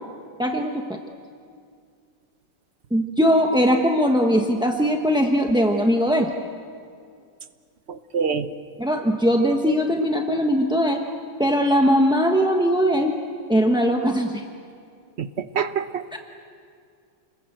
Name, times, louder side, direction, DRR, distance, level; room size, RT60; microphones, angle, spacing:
voice 1, 0.4-1.0 2.9-6.3 8.8-11.0 11.4-13.1 13.5-14.4 16.1-16.2, equal, 5° right, 2 dB, 0.7 m, -20 dB
voice 2, 7.9-8.5 15.2-16.2, right 6 dB, 50° right, 10 dB, 0.8 m, -26 dB
29.5 x 21.5 x 8.0 m, 2.3 s
omnidirectional pair, 2.1 m